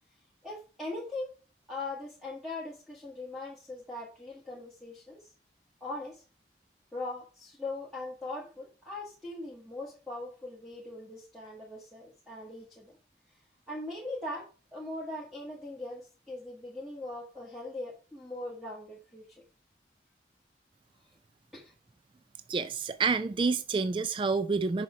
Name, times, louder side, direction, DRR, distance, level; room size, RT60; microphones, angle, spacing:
voice 1, 0.4-1.3 1.7-5.2 5.8-6.2 6.9-13.0 13.7-19.3 21.5-21.7, left 2 dB, ahead, 1.5 m, -40 dB
voice 2, 22.5-24.8, right 4 dB, 30° right, 0.3 m, -28 dB
6.7 x 5.0 x 4.4 m
head